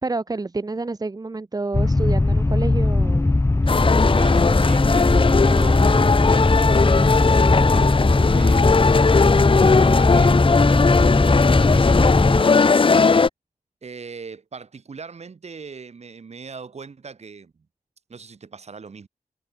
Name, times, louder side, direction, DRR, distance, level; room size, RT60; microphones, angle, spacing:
voice 1, 0.0-3.4, right 3 dB, 25° right, 2.2 m, -29 dB
sound 1, 1.7-12.4, left 2 dB, 20° left, 1.6 m, -19 dB
sound 2, 3.7-13.3, left 4 dB, 40° left, 1.2 m, -19 dB
voice 2, 4.1-7.2 7.6-8.0 8.3-9.2 9.7-10.6 11.1-12.7 13.8-17.7 18.1-19.1, right 5 dB, 50° right, 6.6 m, -40 dB
wide cardioid pair, 150°, 14 cm